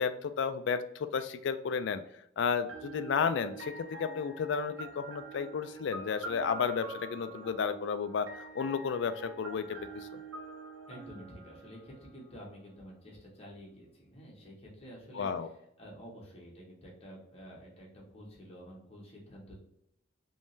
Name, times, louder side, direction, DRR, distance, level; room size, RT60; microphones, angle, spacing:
voice 1, 0.0-2.0 2.4-8.3 8.5-10.2 15.2-15.5, left 6 dB, 60° left, 11 dB, 0.3 m, -32 dB
sound 1, 2.7-12.5, right 3 dB, 75° right, 0.8 m, -46 dB
voice 2, 10.9-19.6, equal, 30° left, -4 dB, 1.2 m, -50 dB
3.6 x 3.1 x 2.7 m, 0.77 s
head